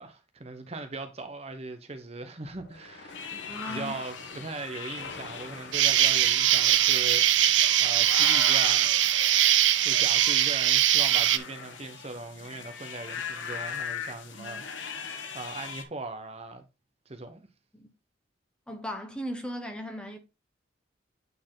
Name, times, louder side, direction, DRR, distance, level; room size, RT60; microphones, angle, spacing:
voice 1, 0.0-3.2 3.6-7.5 7.8-8.9 9.8-15.1 15.3-16.6 17.1-17.5, right 3 dB, 35° right, 0.9 m, -39 dB
sound 1, 2.4-8.0, left 3 dB, 65° left, 1.4 m, -48 dB
sound 2, 3.1-15.8, left 6 dB, 80° left, 1.2 m, -40 dB
voice 2, 3.5-3.9 17.7-17.9 18.7-20.2, equal, 5° left, 1.1 m, -37 dB
Insect, 5.7-11.4, right 12 dB, 80° right, 0.6 m, -22 dB
8.8 x 4.1 x 3.9 m
head